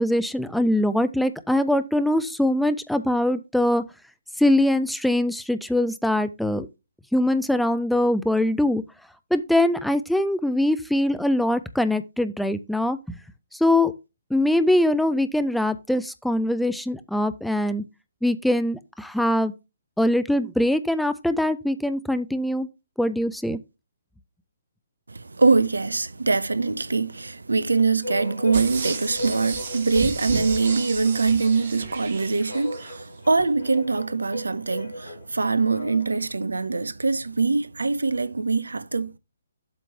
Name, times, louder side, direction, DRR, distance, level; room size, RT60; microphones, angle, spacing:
voice 1, 0.0-3.8 4.4-6.7 7.1-8.8 9.3-13.2 13.5-13.9 14.3-17.8 18.2-19.5 20.0-22.7 23.0-23.6, left 1 dB, ahead, 0.4 m, -22 dB
voice 2, 25.1-39.2, right 4 dB, 70° right, 0.5 m, -23 dB
sound 1, 28.0-36.3, equal, 65° left, 1.8 m, -36 dB
sound 2, 28.5-33.0 33.4-33.5, right 5 dB, 50° right, 1.3 m, -33 dB
7.6 x 3.1 x 5.5 m
figure-of-eight pair, 130°, 0 cm